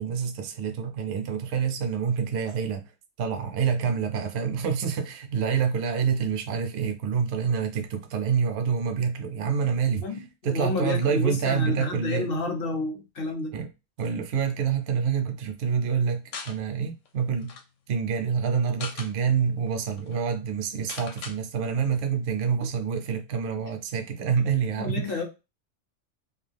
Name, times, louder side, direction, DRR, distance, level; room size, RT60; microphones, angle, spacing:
voice 1, 0.0-2.8 3.2-10.1 10.4-12.3 13.5-13.7 14.0-17.5 17.9-25.2, right 6 dB, 65° right, 0.7 m, -27 dB
voice 2, 10.0-13.6 24.8-25.2, left 3 dB, 55° left, 0.8 m, -30 dB
sound 1, 16.3-16.6 17.0-17.1 17.4-17.6 18.5-19.1 19.7-19.8 20.0-20.2 20.9-21.4, left 5 dB, 75° left, 0.9 m, -38 dB
2.4 x 2.4 x 3.2 m
omnidirectional pair, 1.3 m